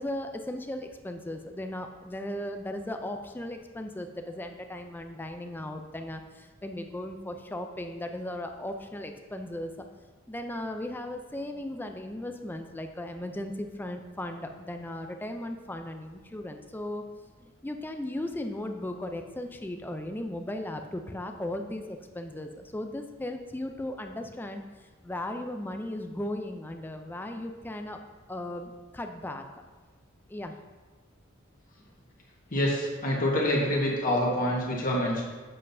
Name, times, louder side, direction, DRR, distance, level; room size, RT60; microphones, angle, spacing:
voice 1, 0.0-9.7 10.3-17.0 17.4-24.6 25.0-28.0 28.3-29.6 30.3-30.6, left 1 dB, 10° left, 5 dB, 0.4 m, -36 dB
voice 2, 32.5-35.2, left 1 dB, 40° left, -4 dB, 1.3 m, -26 dB
7.6 x 7.3 x 2.7 m, 1.3 s
head